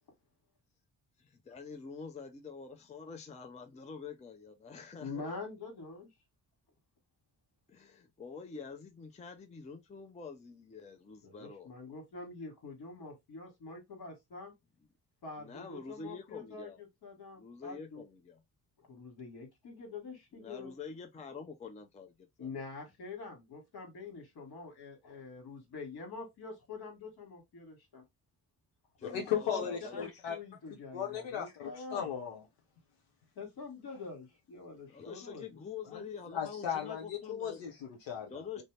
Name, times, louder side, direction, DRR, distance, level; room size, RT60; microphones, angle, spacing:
voice 1, 1.2-5.2 7.7-11.7 15.4-16.8 17.3-18.4 20.3-22.5 29.0-30.1 34.9-37.6 38.3-38.6, left 5 dB, 15° left, 0.5 m, -46 dB
voice 2, 5.0-6.1 11.2-14.5 15.2-16.7 17.0-18.0 18.8-20.7 22.4-28.0 29.3-32.1 33.3-35.6, left 4 dB, 55° left, 1.4 m, -45 dB
voice 3, 29.0-30.4 30.9-32.4 35.9-36.0 36.3-38.6, left 8 dB, 70° left, 0.8 m, -36 dB
2.6 x 2.1 x 3.1 m
hypercardioid pair, 50°, 46 cm